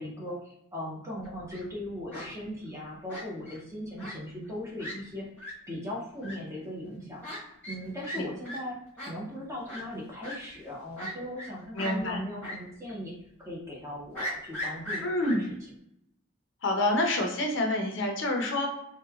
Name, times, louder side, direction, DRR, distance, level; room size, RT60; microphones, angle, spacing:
voice 1, 0.0-8.8 9.0-13.1 13.4-15.5, left 1 dB, 15° right, -4 dB, 0.6 m, -39 dB
Fowl, 1.2-1.6 2.1-2.3 3.1-3.6 4.0-4.1 4.5-4.6 4.8-4.9 5.4-5.5 6.2-6.3 7.2-7.4 7.6-7.8 8.0-8.2 8.4-8.6 9.0-9.1 9.7-9.8 10.2-10.4 11.0-11.5 11.8-11.9 12.4-12.6 12.9-13.0 14.1-15.4, equal, 10° left, 1.0 m, -37 dB
voice 2, 11.7-12.2 15.0-15.4 16.6-18.7, left 1 dB, 60° left, 1 dB, 0.5 m, -27 dB
3.0 x 2.1 x 2.3 m, 0.78 s
head